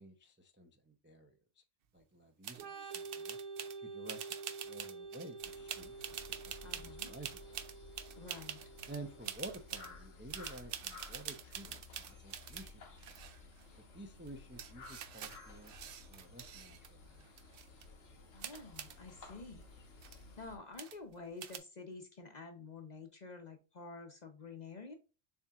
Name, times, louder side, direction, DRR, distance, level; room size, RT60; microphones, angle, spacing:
voice 1, 0.0-1.4 1.9-3.4 3.8-4.2 4.6-6.2 6.8-7.6 8.9-12.8 13.9-15.7 16.1-17.3 17.7-17.8, right 2 dB, 15° right, 3 dB, 0.4 m, -51 dB
sound 1, 2.4-2.7 2.9-3.8 4.1-9.0 9.2-9.9 10.3-12.7 13.0-13.7 14.3-14.4 14.6-16.9 17.2-17.9 18.4-19.0 19.6-19.7 19.9-20.2 20.8-21.1 21.4-21.6, right 9 dB, 60° right, 0.7 m, -46 dB
Organ, 2.5-10.1, right 4 dB, 80° right, 1.2 m, -49 dB
sound 2, 5.4-20.6, left 3 dB, 85° left, 1.6 m, -55 dB
voice 2, 6.6-7.1 8.2-8.6 18.3-19.6 20.4-24.9, left 4 dB, 40° left, 5 dB, 0.7 m, -49 dB
7.1 x 2.9 x 2.4 m, 0.32 s
omnidirectional pair, 1.3 m